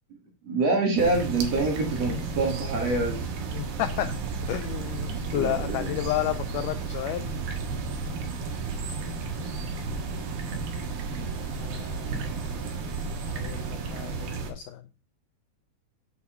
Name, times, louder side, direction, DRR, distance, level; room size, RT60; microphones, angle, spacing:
voice 1, 0.4-3.2 5.1-5.9, right 3 dB, 50° right, 1 dB, 2.7 m, -26 dB
sound 1, 1.0-14.5, right 4 dB, 70° right, 3.2 m, -33 dB
voice 2, 3.5-4.1 4.5-7.3 11.3-12.9 13.3-14.8, left 13 dB, 90° left, 10 dB, 1.8 m, -32 dB
7.9 x 5.7 x 5.1 m, 0.33 s
omnidirectional pair, 4.4 m